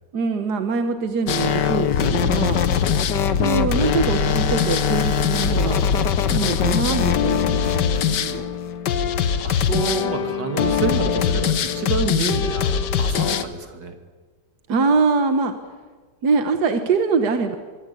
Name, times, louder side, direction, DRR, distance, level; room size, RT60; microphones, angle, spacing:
voice 1, 0.1-2.6 3.4-5.9 6.3-8.5 14.7-15.5 16.2-17.6, right 4 dB, 70° right, 7 dB, 1.9 m, -23 dB
sound 1, 1.3-13.4, left 7 dB, 85° left, 1.7 m, -21 dB
voice 2, 9.4-13.9, right 4 dB, 85° right, 6 dB, 3.1 m, -28 dB
24.5 x 24.0 x 8.4 m, 1.4 s
omnidirectional pair, 1.8 m